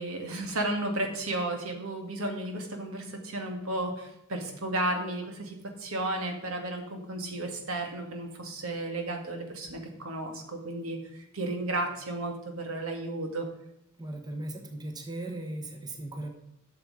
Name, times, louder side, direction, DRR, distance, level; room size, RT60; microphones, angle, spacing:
voice 1, 0.0-13.5, right 2 dB, 80° right, 3 dB, 2.1 m, -33 dB
voice 2, 14.0-16.3, right 1 dB, 20° right, 3 dB, 1.2 m, -37 dB
12.0 x 6.8 x 4.9 m, 0.83 s
head